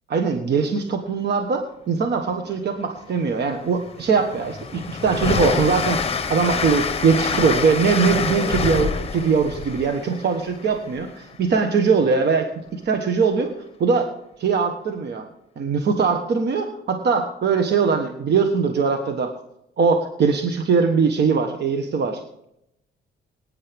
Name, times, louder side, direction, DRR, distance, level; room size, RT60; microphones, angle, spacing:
voice 1, 0.1-12.5 12.7-13.5 13.8-14.1 14.4-15.2 15.6-19.3 19.8-22.2, right 5 dB, 60° right, 5 dB, 1.4 m, -21 dB
Train, 3.1-3.2 3.6-11.3, left 5 dB, 30° left, 1.3 m, -27 dB
19.0 x 9.7 x 3.6 m, 0.78 s
cardioid pair, 90°, 20 cm